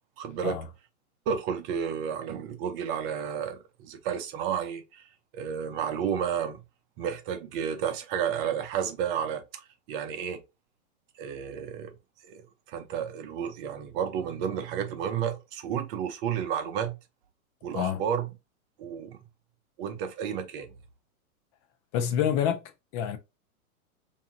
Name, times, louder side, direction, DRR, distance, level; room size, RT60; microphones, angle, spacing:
voice 1, 0.2-0.6 1.3-5.0 5.3-6.6 7.0-10.4 11.2-11.9 12.2-17.0 17.6-18.3 18.8-19.2 19.8-20.7, right 8 dB, 40° right, 0.7 m, -31 dB
voice 2, 21.9-23.2, left 9 dB, 30° left, 0.4 m, -28 dB
2.8 x 2.3 x 2.7 m
hypercardioid pair, 115°, 43 cm